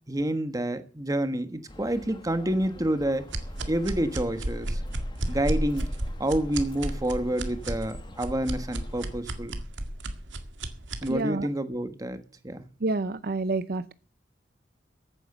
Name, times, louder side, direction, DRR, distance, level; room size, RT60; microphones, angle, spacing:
voice 1, 0.1-3.2 3.7-4.8 5.3-5.9 6.2-9.6 11.0-12.6, right 1 dB, 20° right, 1.3 m, -28 dB
sound 1, 1.7-9.2, left 1 dB, 25° left, 1.3 m, -47 dB
sound 2, 3.3-11.1, right 1 dB, 90° right, 1.9 m, -32 dB
voice 2, 11.1-11.5 12.8-13.9, right 3 dB, 55° right, 0.6 m, -28 dB
14.5 x 9.3 x 7.1 m
head